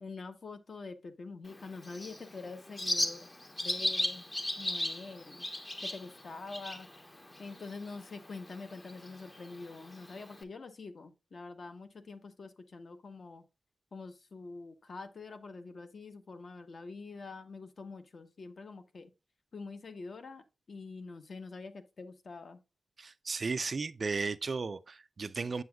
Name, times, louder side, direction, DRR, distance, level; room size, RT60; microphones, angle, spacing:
voice 1, 0.0-3.3 3.6-4.3 4.6-5.5 5.8-6.9 7.4-13.4 13.9-19.1 19.5-22.6, left 3 dB, 45° left, 0.9 m, -45 dB
Bird, 1.5-10.4, left 1 dB, 20° left, 0.7 m, -38 dB
voice 2, 23.0-25.6, right 4 dB, 40° right, 0.3 m, -35 dB
7.7 x 7.7 x 2.2 m
wide cardioid pair, 165°, 0 cm